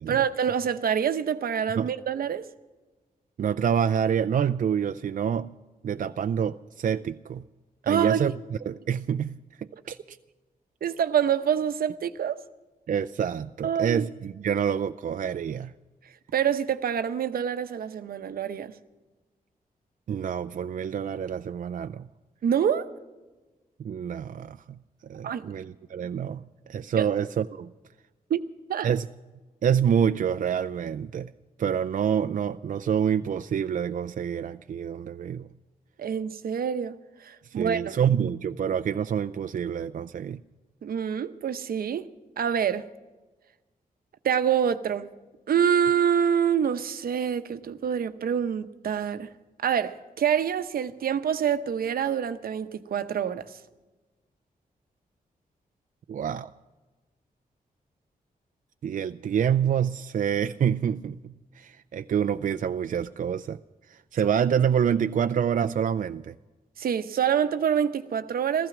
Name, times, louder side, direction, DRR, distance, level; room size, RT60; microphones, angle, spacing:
voice 1, 0.1-2.5 7.9-8.3 10.8-12.4 13.6-14.0 16.3-18.7 22.4-22.9 25.2-25.4 27.0-27.1 28.3-28.4 28.7-28.9 36.0-38.0 40.8-42.0 42.4-42.9 44.2-45.1 45.5-49.3 49.6-53.6 66.8-68.7, right 8 dB, 85° right, 0.8 m, -26 dB
voice 2, 3.4-5.5 5.8-7.4 7.9-8.4 8.7-10.2 12.9-15.7 20.1-22.1 23.8-24.8 25.1-27.7 28.8-29.1 29.6-31.3 31.6-35.5 37.5-40.4 56.1-56.5 58.8-63.6 63.9-66.4, right 8 dB, 60° right, 0.4 m, -27 dB
15.5 x 15.0 x 6.0 m
wide cardioid pair, 110°, 15 cm